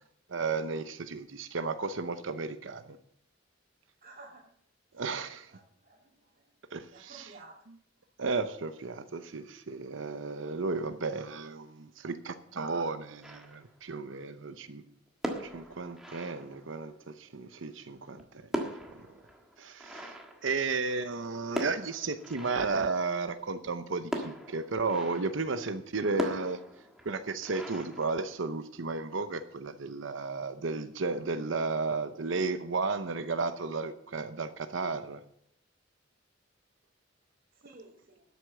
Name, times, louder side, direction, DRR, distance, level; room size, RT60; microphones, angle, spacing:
voice 1, 0.3-3.0 4.9-5.5 6.7-7.4 8.2-14.8 15.4-18.5 18.9-19.1 19.6-26.6 27.0-35.2, right 4 dB, 75° right, 10 dB, 0.8 m, -33 dB
voice 2, 4.0-4.4 5.5-6.1 6.9-7.5 37.6-38.2, right 2 dB, 45° right, -6 dB, 2.6 m, -52 dB
sound 1, 13.2-13.9 15.1-17.0 18.0-21.1 21.5-23.1 24.1-25.5 26.2-28.7, equal, 5° right, 1.6 m, -40 dB
12.5 x 8.2 x 6.5 m, 0.68 s
head